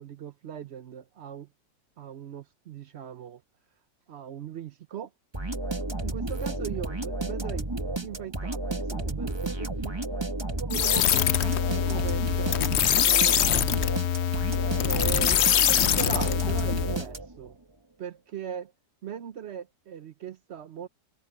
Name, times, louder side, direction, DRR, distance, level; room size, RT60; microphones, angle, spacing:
voice 1, 0.0-1.5 2.0-3.4 4.1-5.1 6.0-7.7 8.0-10.0 10.6-13.7 14.8-17.5 18.0-18.7 19.0-20.9, right 8 dB, 65° right, 0.6 m, -39 dB
sound 1, 5.3-17.5, right 2 dB, 15° right, 1.5 m, -32 dB
sound 2, 10.7-17.0, left 10 dB, 75° left, 0.6 m, -24 dB
omnidirectional pair, 1.9 m